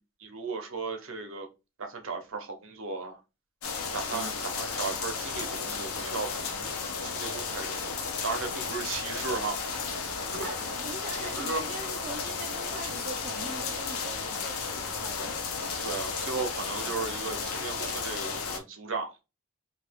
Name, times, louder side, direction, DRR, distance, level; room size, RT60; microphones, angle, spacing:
voice 1, 0.2-1.5 1.8-3.2 3.9-6.7 7.0-9.6 10.1-10.7 11.2-11.6 15.8-19.2, right 4 dB, 70° right, 0.7 m, -36 dB
Medium Rain Ambience Tin Roof Top edlarez vsnr, 3.6-18.6, left 5 dB, 90° left, 0.6 m, -34 dB
voice 2, 4.1-4.4 10.4-15.6, right 3 dB, 30° right, 0.3 m, -43 dB
2.7 x 2.3 x 3.4 m
head